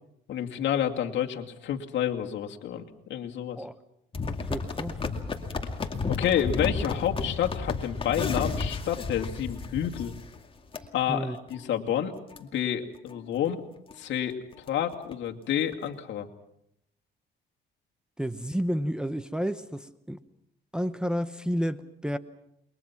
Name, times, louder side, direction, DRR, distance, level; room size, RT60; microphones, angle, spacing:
voice 1, 0.3-2.8 3.1-3.6 6.1-10.1 10.9-12.1 12.4-13.6 14.0-16.3, left 10 dB, 65° left, 3 dB, 2.4 m, -29 dB
sound 1, 4.1-10.4 10.7-10.9 11.3-11.6 12.0-12.1 12.3-12.4 12.9-13.2 13.5-13.6 13.9-14.0 14.3-15.1 15.7-15.8, left 4 dB, 25° left, 2.4 m, -32 dB
voice 2, 4.3-5.0 11.1-11.4 18.2-20.2 20.7-22.2, equal, 5° right, 9 dB, 0.9 m, -31 dB
28.5 x 22.5 x 5.9 m, 0.77 s
cardioid pair, 110°, 20 cm